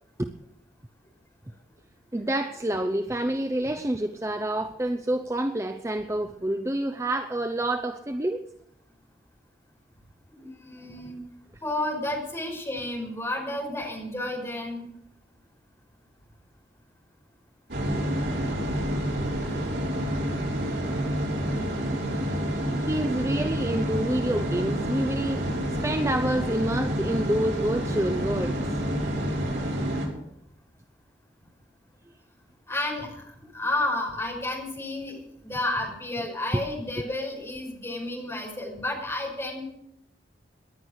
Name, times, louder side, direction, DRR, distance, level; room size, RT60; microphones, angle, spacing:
voice 1, 2.1-8.4 21.0-21.2 22.8-25.5 25.8-28.6, right 1 dB, 15° right, 6 dB, 0.6 m, -28 dB
voice 2, 10.4-11.2 11.6-14.9 32.7-39.6, left 1 dB, 15° left, -1 dB, 5.5 m, -31 dB
sound 1, 17.7-30.1, equal, 70° right, 5.8 m, -28 dB
19.0 x 11.0 x 6.4 m, 0.75 s
head